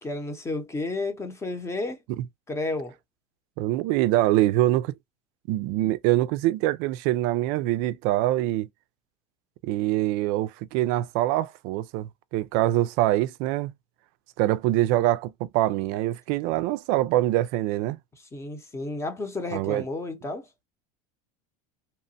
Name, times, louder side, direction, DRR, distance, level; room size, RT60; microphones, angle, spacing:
voice 1, 0.0-2.0 2.5-2.9 18.3-20.5, left 2 dB, 15° left, 0.8 m, -32 dB
voice 2, 3.6-4.9 5.5-8.7 9.6-13.7 14.4-18.0 19.5-19.8, right 15 dB, 60° right, 0.4 m, -24 dB
2.9 x 2.1 x 2.6 m
supercardioid pair, 110°, 18 cm